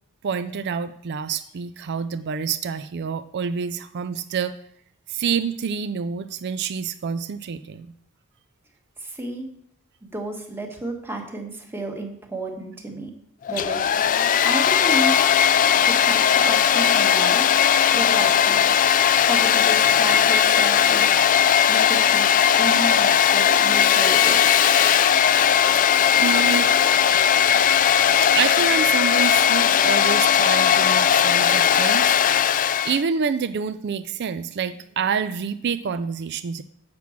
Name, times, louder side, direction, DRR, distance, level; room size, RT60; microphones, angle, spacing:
voice 1, 0.2-4.5 5.1-7.9 26.2-26.7 27.5-27.6 28.2-32.2 32.8-36.6, right 6 dB, 50° right, 11 dB, 0.4 m, -27 dB
voice 2, 9.0-9.5 10.0-13.1 13.5-13.8 14.4-15.1 15.8-17.5 17.9-18.6 19.2-21.1 21.7-24.6, right 2 dB, 10° right, 2 dB, 1.4 m, -32 dB
Domestic sounds home sounds, 13.5-33.0, left 9 dB, 40° left, 0.3 m, -18 dB
7.7 x 6.0 x 7.1 m, 0.70 s
head